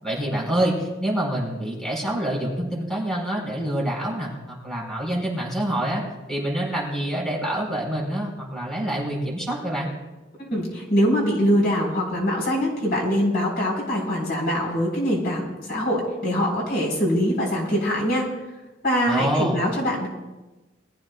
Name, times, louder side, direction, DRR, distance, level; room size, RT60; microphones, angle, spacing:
voice 1, 0.0-6.0 6.3-9.9 19.1-19.6, right 1 dB, 5° left, -3 dB, 4.7 m, -26 dB
voice 2, 10.4-18.3 18.8-20.1, equal, 55° left, -2 dB, 4.3 m, -23 dB
22.5 x 14.5 x 2.3 m, 1.1 s
head